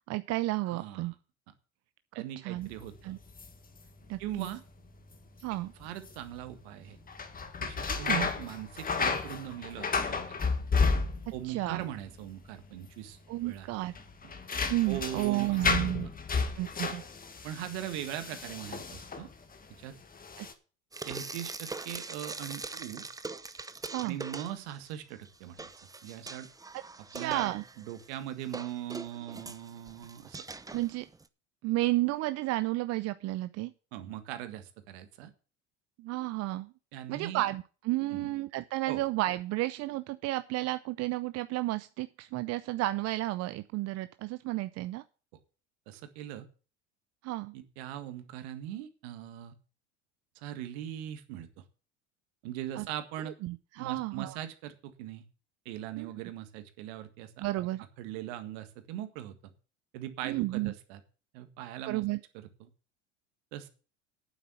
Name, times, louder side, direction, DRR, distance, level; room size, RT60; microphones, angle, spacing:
voice 1, 0.1-1.1 2.4-2.7 3.0-3.2 4.1-4.5 5.4-5.7 7.9-8.3 11.4-11.8 13.3-13.9 14.7-16.1 16.6-17.0 20.4-20.5 23.9-24.2 27.1-27.6 30.7-31.1 31.6-33.7 36.0-36.7 37.1-45.0 47.2-47.5 52.8-52.9 53.4-54.4 56.0-56.1 57.4-57.8 60.2-60.7 61.9-62.2, right 18 dB, 50° right, 13 dB, 0.6 m, -32 dB
voice 2, 0.6-1.2 2.1-3.2 4.2-4.6 5.8-7.0 7.6-10.5 11.3-13.7 14.2-14.3 14.9-15.7 16.0-16.1 17.4-19.3 19.8-20.0 21.1-23.1 24.0-25.7 26.0-26.5 27.1-30.5 33.9-35.3 36.9-37.4 38.1-38.3 38.9-39.0 45.9-46.5 47.5-49.6 50.4-51.6 52.4-53.3 53.8-55.2 55.7-57.7 58.0-59.5 59.9-61.0 61.3-62.0 62.3-62.7 63.5-63.7, right 12 dB, 70° right, 9 dB, 1.8 m, -41 dB
sound 1, 2.6-19.6 20.1-20.5, left 4 dB, 25° left, 1.7 m, -33 dB
Frying (food), 20.9-24.9 25.3-31.3, right 3 dB, 10° right, 0.8 m, -42 dB
9.2 x 7.4 x 7.2 m, 0.37 s
hypercardioid pair, 75°, 34 cm